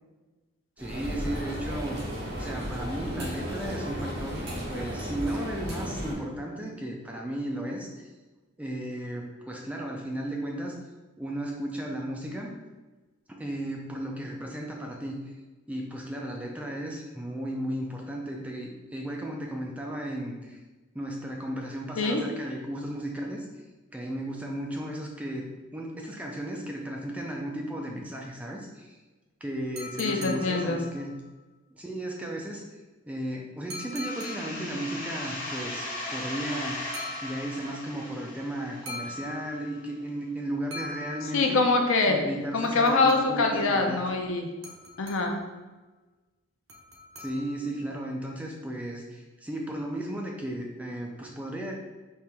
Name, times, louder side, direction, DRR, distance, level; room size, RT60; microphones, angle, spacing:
voice 1, 0.8-2.0 2.4-8.1 8.6-10.8 11.2-12.5 13.3-15.3 15.7-20.6 20.9-23.5 23.9-29.0 29.4-31.2 31.7-32.6 33.1-41.6 42.1-44.0 47.2-51.7, right 1 dB, 5° right, -1 dB, 0.4 m, -35 dB
sound 1, 0.8-6.1, equal, 50° right, 1.4 m, -34 dB
sound 2, 29.8-31.2 33.7-34.8 36.9-37.8 38.9-39.9 40.7-41.7 42.6-43.6 44.6-45.5 46.7-47.8, left 2 dB, 65° right, 0.8 m, -42 dB
voice 2, 30.0-30.8 41.3-42.2 42.5-44.5 45.0-45.4, left 3 dB, 70° left, 3 dB, 0.6 m, -24 dB
sound 3, 34.0-39.5, left 1 dB, 40° left, 0.9 m, -37 dB
4.4 x 2.9 x 3.5 m, 1.2 s
head